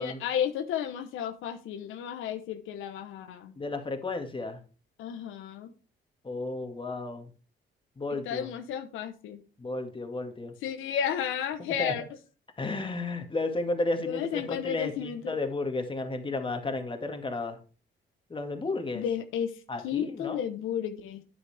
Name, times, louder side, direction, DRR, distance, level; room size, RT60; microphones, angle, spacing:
voice 1, 0.0-3.5 5.0-5.7 8.1-9.4 10.6-12.0 14.1-15.3 18.9-19.5 19.8-21.2, left 9 dB, 90° left, 8 dB, 1.0 m, -32 dB
voice 2, 3.6-4.6 6.2-7.3 8.0-8.5 9.6-10.5 11.8-11.9 12.6-17.6 18.3-19.0 19.7-20.4, left 2 dB, 25° left, 5 dB, 2.0 m, -33 dB
9.8 x 8.4 x 3.4 m, 0.35 s
cardioid pair, 90°, 20 cm